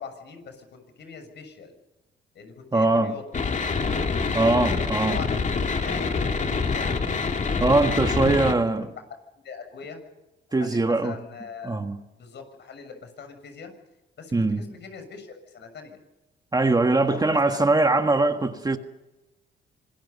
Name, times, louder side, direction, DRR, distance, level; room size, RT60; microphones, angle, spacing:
voice 1, 0.0-1.8 2.3-3.2 5.1-7.0 8.0-8.3 8.8-8.9 9.4-10.0 10.6-11.8 12.2-13.7 14.2-16.0 17.1-17.6, left 5 dB, 60° left, 6.7 m, -41 dB
voice 2, 2.7-3.2 4.3-5.2 7.6-8.9 10.5-11.2 11.6-12.0 14.3-14.6 16.5-18.8, right 2 dB, 20° right, 1.6 m, -22 dB
sound 1, 3.3-8.5, left 4 dB, 40° left, 3.1 m, -26 dB
26.0 x 20.5 x 5.5 m
cardioid pair, 90°, 20 cm